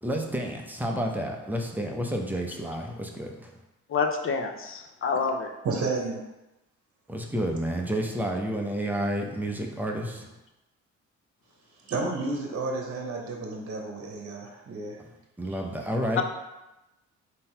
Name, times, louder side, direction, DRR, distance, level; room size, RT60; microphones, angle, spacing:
voice 1, 0.0-3.5 7.1-10.3 15.4-16.2, equal, 5° right, 1 dB, 0.6 m, -30 dB
voice 2, 3.9-5.5 16.2-16.3, left 5 dB, 45° left, 5 dB, 0.6 m, -27 dB
voice 3, 5.6-6.2 11.9-15.0 15.5-15.6, right 3 dB, 50° right, 0 dB, 0.9 m, -31 dB
3.8 x 2.9 x 4.3 m, 0.98 s
cardioid pair, 90°, 30 cm